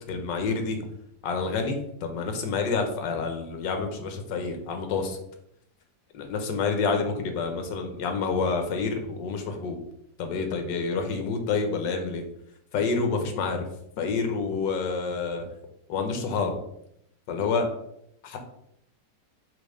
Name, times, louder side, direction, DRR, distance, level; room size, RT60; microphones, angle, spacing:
voice 1, 0.1-0.9 1.2-5.2 6.1-9.8 10.2-12.2 12.7-13.6 14.0-15.5 15.9-16.6 17.3-17.7 18.2-18.4, left 4 dB, 75° left, 5 dB, 1.6 m, -28 dB
5.3 x 4.0 x 5.0 m, 0.75 s
omnidirectional pair, 2.0 m